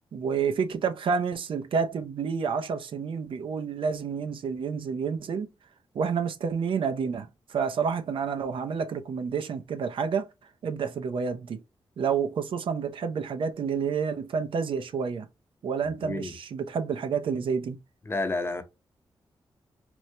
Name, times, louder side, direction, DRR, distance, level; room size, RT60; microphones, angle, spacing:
voice 1, 0.1-5.5 5.9-10.3 10.6-11.6 12.0-15.3 15.6-17.8, right 6 dB, 70° right, 0.5 m, -29 dB
voice 2, 15.8-16.3 18.1-18.6, left 2 dB, 25° left, 0.6 m, -31 dB
4.4 x 2.1 x 2.7 m
wide cardioid pair, 105°, 9 cm